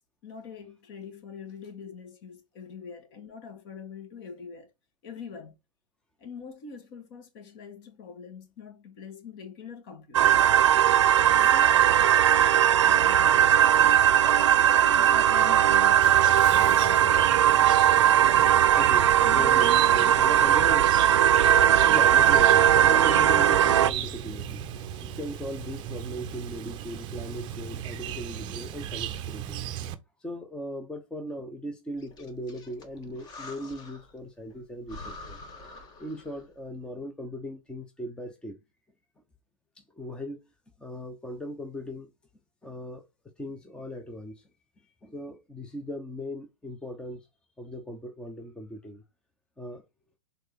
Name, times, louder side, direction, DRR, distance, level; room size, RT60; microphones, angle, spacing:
voice 1, 0.2-4.7 5.0-5.6 6.2-10.5 11.2-11.9 12.8-17.4 19.2-20.2 22.1-22.5, left 5 dB, 40° left, 1.9 m, -43 dB
sound 1, 10.1-23.9, right 11 dB, 60° right, 0.4 m, -19 dB
Chirp tweet, 16.0-29.9, right 10 dB, 25° right, 0.7 m, -36 dB
voice 2, 18.5-20.9 21.9-29.6 30.2-35.4 36.0-38.6 39.8-40.4 40.8-42.1 42.6-43.0 43.4-44.5 44.8-47.3 47.6-49.0 49.6-49.8, equal, 5° left, 0.8 m, -38 dB
Breathing, 32.0-34.2 34.5-34.6 34.9-36.5, left 2 dB, 25° left, 1.5 m, -46 dB
6.4 x 3.9 x 4.5 m
figure-of-eight pair, 105°, 17 cm